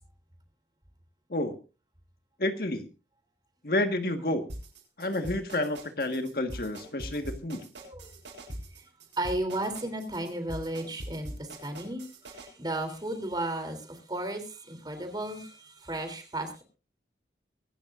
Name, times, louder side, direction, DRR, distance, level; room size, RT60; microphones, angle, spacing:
voice 1, 2.4-2.9 3.6-4.5 5.0-7.7, left 1 dB, 55° left, 7 dB, 1.6 m, -30 dB
sound 1, 4.5-12.5, right 1 dB, 85° right, 7.7 m, -42 dB
voice 2, 7.8-8.1 8.7-8.9 9.2-16.6, right 1 dB, 25° right, 7 dB, 3.3 m, -34 dB
24.5 x 12.5 x 2.6 m, 0.32 s
head